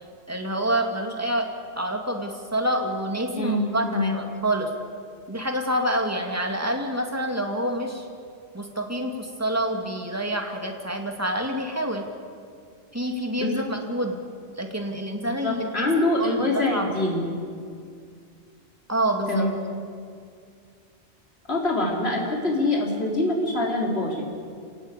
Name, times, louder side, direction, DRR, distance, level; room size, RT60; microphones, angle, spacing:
voice 1, 0.3-1.5 1.8-4.7 5.3-8.1 8.5-12.1 12.9-14.2 14.6-15.9 16.2-16.9 18.9-19.5, right 1 dB, 15° right, 2 dB, 2.5 m, -27 dB
voice 2, 3.4-4.2 13.4-13.7 15.4-17.3 19.3-19.5 21.5-24.2, left 1 dB, 70° left, -2 dB, 4.0 m, -24 dB
26.5 x 18.5 x 8.4 m, 2.3 s
omnidirectional pair, 1.1 m